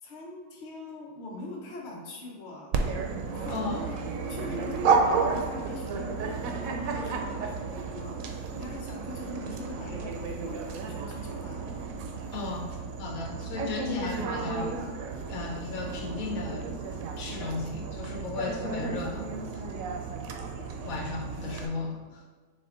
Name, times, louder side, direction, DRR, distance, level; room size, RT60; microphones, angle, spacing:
voice 1, 0.0-2.7 3.3-11.8 21.3-21.7, left 2 dB, 40° left, -2 dB, 0.8 m, -42 dB
Dog, 2.7-21.7, right 4 dB, 85° right, 1.0 m, -32 dB
voice 2, 3.5-3.8 12.3-12.7 13.0-14.8 15.3-16.7 17.2-19.6 20.8-22.2, left 3 dB, 85° left, 1 dB, 1.2 m, -35 dB
4.2 x 3.3 x 3.8 m, 1.4 s
omnidirectional pair, 1.4 m